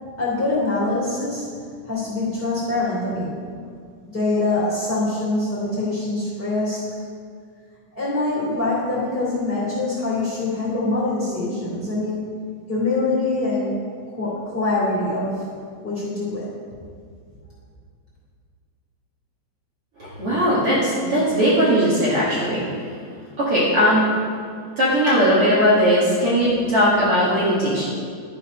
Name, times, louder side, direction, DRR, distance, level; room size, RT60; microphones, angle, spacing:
voice 1, 0.2-1.5 1.8-3.4 4.1-6.8 7.9-12.2 12.7-13.7 14.1-15.4 15.8-16.5, left 2 dB, 15° left, -8 dB, 2.8 m, -24 dB
voice 2, 20.0-22.6 23.4-24.1 24.8-27.9, equal, 50° right, -8 dB, 2.3 m, -18 dB
12.5 x 5.6 x 5.3 m, 2.2 s
omnidirectional pair, 3.8 m